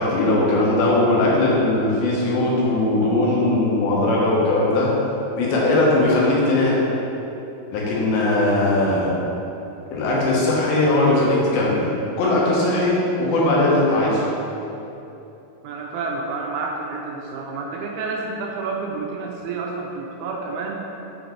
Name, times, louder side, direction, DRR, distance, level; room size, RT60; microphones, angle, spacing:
voice 1, 0.0-4.9 5.4-6.8 7.7-9.1 9.9-11.9 12.2-14.2, left 2 dB, 85° left, -5 dB, 3.4 m, -19 dB
voice 2, 15.6-20.9, right 3 dB, 85° right, 0 dB, 2.3 m, -29 dB
7.0 x 4.0 x 4.6 m, 2.9 s
omnidirectional pair, 4.9 m